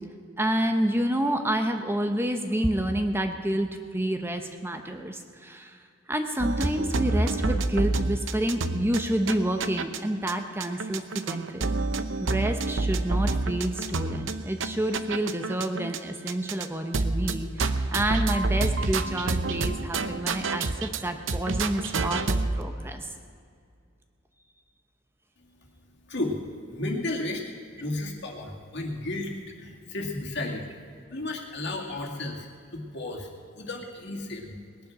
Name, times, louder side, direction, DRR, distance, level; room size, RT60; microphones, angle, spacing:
voice 1, 0.4-5.8 6.1-11.6 12.2-23.1, right 1 dB, 10° right, 6 dB, 0.8 m, -28 dB
sound 1, 6.4-10.0 10.3-10.4 10.6-16.0 16.3-16.7 16.9-21.0 21.3-22.6, right 3 dB, 75° right, 0.7 m, -28 dB
voice 2, 26.1-30.8 31.1-33.3 33.6-34.6, left 2 dB, 60° left, 0 dB, 2.3 m, -33 dB
19.0 x 10.5 x 6.0 m, 2.2 s
head